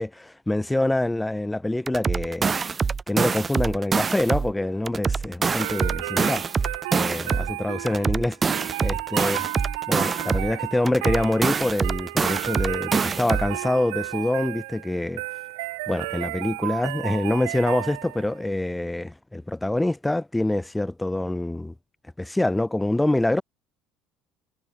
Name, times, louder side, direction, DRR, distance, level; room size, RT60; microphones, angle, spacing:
voice 1, 0.0-2.5 3.1-6.4 6.9-7.2 7.6-8.4 8.8-9.5 9.9-15.2 15.9-21.7 22.2-23.4, left 1 dB, 10° left, 4.4 m, -25 dB
sound 1, 1.9-4.5 4.9-7.5 7.9-10.5 10.9-13.5, right 5 dB, 30° right, 4.3 m, -25 dB
sound 2, 5.6-18.4, right 25 dB, 85° right, 1.9 m, -33 dB
supercardioid pair, 85°, 0 cm